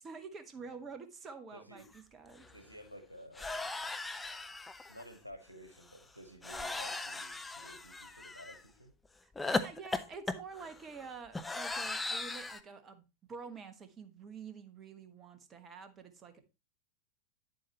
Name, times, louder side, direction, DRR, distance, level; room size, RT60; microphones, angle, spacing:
voice 1, 0.0-2.5 9.2-16.4, right 5 dB, 25° right, 1.2 m, -48 dB
voice 2, 1.5-1.8 2.4-3.7 4.9-8.9, equal, 85° right, 1.4 m, -53 dB
sound 1, 1.9-2.0 2.3-2.5 3.4-5.0 6.4-8.6 9.4-12.6, left 3 dB, 10° left, 0.7 m, -38 dB
9.2 x 7.7 x 2.9 m
figure-of-eight pair, 90°, 0 cm